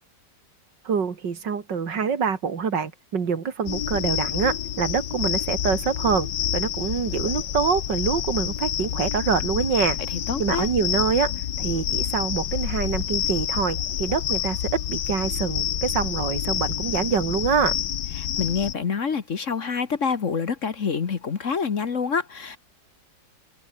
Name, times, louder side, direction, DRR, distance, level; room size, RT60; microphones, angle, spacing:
voice 1, 0.8-6.3 6.5-10.0 10.4-11.3 11.6-17.8, right 6 dB, 75° right, 2.8 m, -25 dB
sound 1, 3.7-18.7, left 10 dB, 70° left, 1.7 m, -28 dB
voice 2, 10.1-10.7 18.2-22.6, left 6 dB, 45° left, 1.6 m, -27 dB
omnidirectional pair, 1.9 m